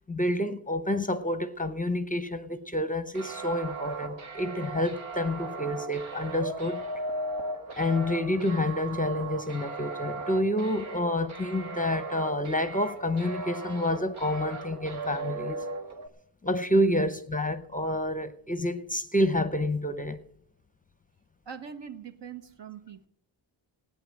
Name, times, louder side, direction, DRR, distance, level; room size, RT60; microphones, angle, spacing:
voice 1, 0.1-6.8 7.7-15.6 16.4-20.2, left 1 dB, 20° left, 0.6 m, -28 dB
sound 1, 3.1-16.1, right 3 dB, 85° right, 1.7 m, -37 dB
voice 2, 21.5-23.1, right 7 dB, 65° right, 1.3 m, -42 dB
16.5 x 9.2 x 6.3 m
wide cardioid pair, 135°, 47 cm